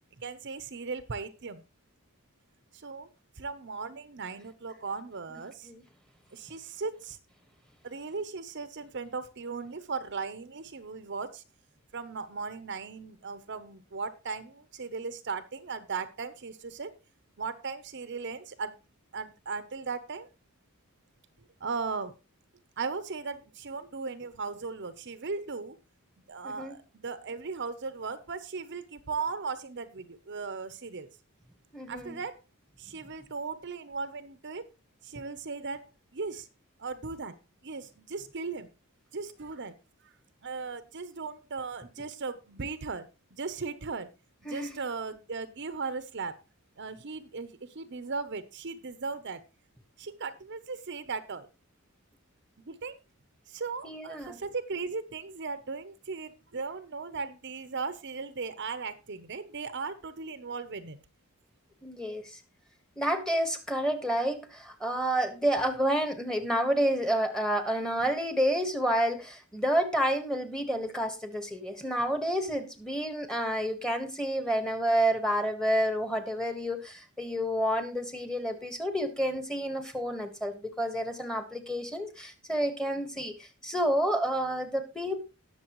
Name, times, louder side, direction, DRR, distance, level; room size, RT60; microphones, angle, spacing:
voice 1, 0.2-1.6 2.7-3.1 3.4-5.7 6.3-7.2 7.8-11.4 11.9-16.9 17.4-18.7 19.1-20.3 21.6-22.2 22.8-25.8 26.3-31.1 31.9-32.4 32.8-34.7 35.0-35.9 36.1-36.5 36.8-37.3 37.6-38.7 39.1-39.7 40.0-40.1 40.4-44.1 44.4-46.4 46.8-49.4 50.0-51.5 52.6-53.0 53.5-61.0, right 4 dB, 55° right, 12 dB, 0.8 m, -37 dB
voice 2, 26.4-26.7 31.7-32.2 44.4-44.7 53.8-54.4 61.8-62.4 63.0-85.2, equal, 5° left, 8 dB, 1.5 m, -29 dB
19.0 x 6.8 x 3.0 m, 0.28 s
head